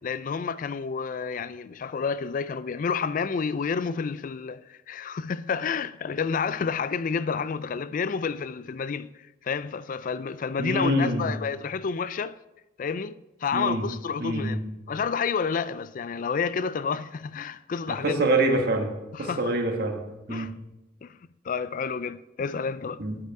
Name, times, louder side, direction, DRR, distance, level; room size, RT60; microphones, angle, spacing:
voice 1, 0.0-9.1 9.4-12.4 12.8-14.6 14.9-18.3 19.1-19.4 20.3-20.5 21.0-21.2 21.4-23.0, left 5 dB, 45° left, 0.3 m, -30 dB
voice 2, 10.6-11.3 13.5-13.8 14.2-14.6 17.9-18.9 19.2-20.0 20.3-20.5 23.0-23.2, right 1 dB, 55° right, 1.4 m, -25 dB
9.3 x 8.1 x 4.7 m
head